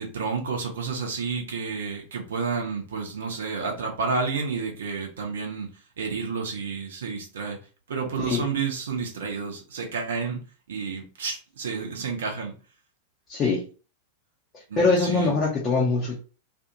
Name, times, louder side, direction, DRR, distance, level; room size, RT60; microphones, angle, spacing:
voice 1, 0.0-5.7 6.0-7.6 7.9-10.4 10.7-12.5 14.7-15.4, right 5 dB, 65° right, 2 dB, 0.7 m, -30 dB
voice 2, 13.3-13.6 14.8-16.2, left 4 dB, 30° left, -4 dB, 0.7 m, -23 dB
2.5 x 2.4 x 2.8 m, 0.35 s
figure-of-eight pair, 90°, 0 cm